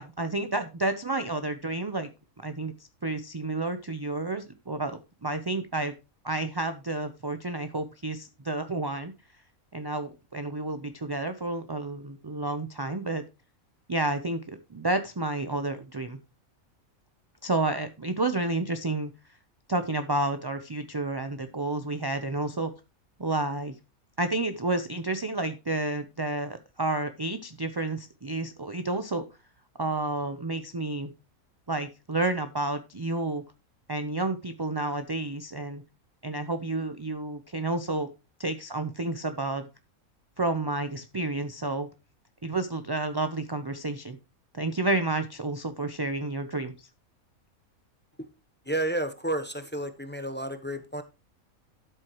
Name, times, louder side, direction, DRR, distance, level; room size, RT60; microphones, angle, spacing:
voice 1, 0.0-2.1 2.4-2.7 3.0-5.9 6.2-9.1 9.7-13.2 13.9-16.2 17.4-19.1 19.7-22.7 23.2-23.7 24.2-29.2 29.8-31.1 31.7-33.4 33.9-35.8 36.2-38.1 38.4-39.6 40.4-41.9 42.4-44.2 44.5-46.7, right 2 dB, 30° right, 0.4 m, -30 dB
voice 2, 48.7-51.0, right 1 dB, 10° left, 0.8 m, -31 dB
12.5 x 7.7 x 3.0 m
omnidirectional pair, 1.5 m